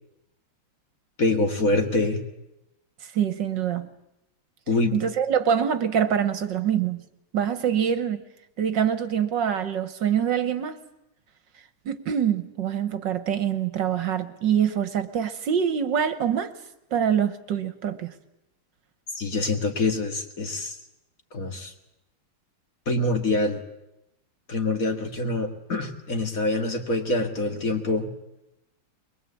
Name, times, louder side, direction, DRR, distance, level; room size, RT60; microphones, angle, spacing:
voice 1, 1.2-2.2 4.7-5.0 19.1-20.8 21.3-21.7 22.9-23.6 24.5-28.1, left 2 dB, 40° left, 5 dB, 2.4 m, -25 dB
voice 2, 3.0-3.9 4.9-7.0 7.3-8.2 8.6-10.8 11.9-16.5 16.9-18.1, right 8 dB, 65° right, 12 dB, 1.7 m, -25 dB
22.5 x 22.5 x 8.4 m, 0.88 s
omnidirectional pair, 2.3 m